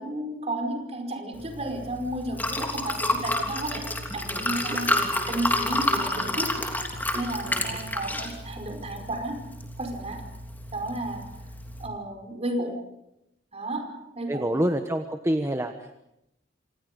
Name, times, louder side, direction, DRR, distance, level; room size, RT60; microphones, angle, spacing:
voice 1, 0.0-3.9 4.1-6.8 7.1-9.4 9.8-10.2 10.7-11.3 11.8-12.8 13.5-13.9 14.1-14.6, right 1 dB, 35° right, 4 dB, 5.1 m, -33 dB
Liquid, 1.3-11.9, left 1 dB, 10° left, 3.2 m, -30 dB
voice 2, 14.3-15.9, right 1 dB, 15° right, 6 dB, 1.1 m, -26 dB
27.5 x 27.0 x 5.3 m, 0.85 s
head